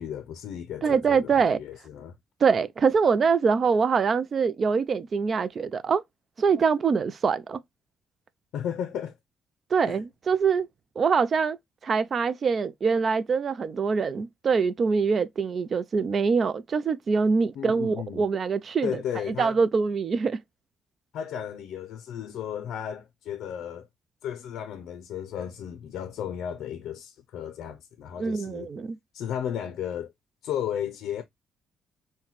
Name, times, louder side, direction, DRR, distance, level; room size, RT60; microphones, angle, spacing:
voice 1, 0.0-2.1 8.5-9.2 9.9-10.0 17.6-18.2 18.8-19.6 21.1-23.9 24.2-28.7 29.1-30.1 30.4-31.2, left 9 dB, 80° left, 0.4 m, -34 dB
voice 2, 0.8-1.6 2.4-6.0 6.4-7.6 9.7-10.7 11.0-11.6 11.8-19.0 19.4-20.4 28.2-29.0, right 5 dB, 45° right, 0.4 m, -24 dB
5.5 x 2.2 x 3.0 m
cardioid pair, 90°, 0 cm